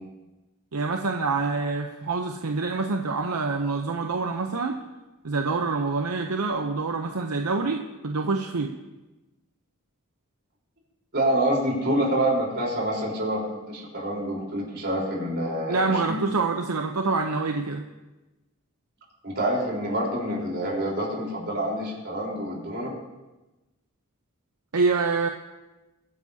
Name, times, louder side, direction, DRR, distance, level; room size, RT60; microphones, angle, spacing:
voice 1, 0.7-4.8 5.2-8.7 15.7-17.9 24.7-25.3, right 4 dB, 80° right, 4 dB, 0.8 m, -26 dB
voice 2, 11.1-16.2 19.2-22.9, right 1 dB, 50° right, -3 dB, 4.1 m, -27 dB
22.5 x 9.7 x 2.8 m, 1.1 s
head